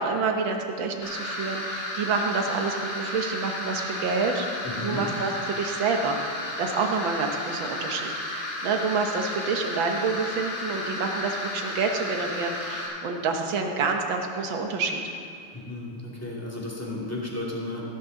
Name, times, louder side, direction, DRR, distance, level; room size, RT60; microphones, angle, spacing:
voice 1, 0.0-4.5 4.8-6.2 6.6-15.0, right 4 dB, 65° right, 3 dB, 1.8 m, -28 dB
sound 1, 1.0-12.9, left 1 dB, 65° left, 3.5 m, -33 dB
voice 2, 4.6-5.0 15.5-17.8, left 2 dB, 5° left, -5 dB, 2.3 m, -34 dB
15.0 x 12.5 x 4.0 m, 2.5 s
omnidirectional pair, 2.4 m